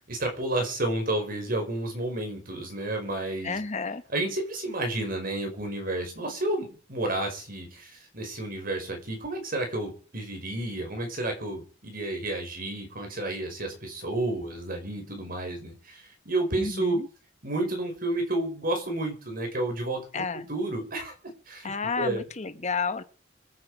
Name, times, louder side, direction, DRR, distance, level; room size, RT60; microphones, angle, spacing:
voice 1, 0.1-3.6 4.1-17.0 17.4-20.2 20.5-21.1 21.5-21.7 22.0-22.2, right 2 dB, 50° right, 4 dB, 5.6 m, -31 dB
voice 2, 3.4-4.0 16.6-17.1 20.1-20.5 21.6-23.0, left 4 dB, 40° left, 11 dB, 1.0 m, -31 dB
24.5 x 9.5 x 5.1 m, 0.39 s
head